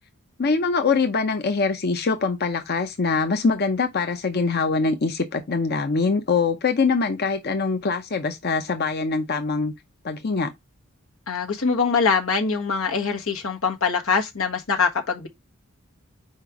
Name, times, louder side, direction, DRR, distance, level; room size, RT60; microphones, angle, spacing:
voice 1, 0.4-9.7 10.0-10.5, left 4 dB, 50° left, 0.7 m, -23 dB
voice 2, 11.3-15.3, left 5 dB, 90° left, 1.4 m, -23 dB
5.0 x 4.4 x 4.7 m
head